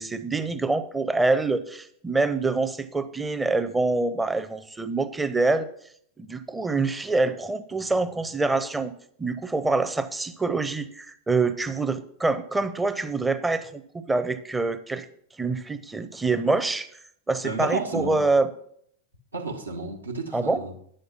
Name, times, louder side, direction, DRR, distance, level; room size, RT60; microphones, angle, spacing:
voice 1, 0.0-5.7 6.2-8.9 9.2-15.1 15.4-16.9 17.3-18.5 20.3-20.6, right 3 dB, 10° right, 0.6 m, -25 dB
voice 2, 17.4-18.2 19.3-20.7, right 3 dB, 80° right, 1.2 m, -31 dB
9.3 x 6.5 x 5.6 m
figure-of-eight pair, 90°, 0 cm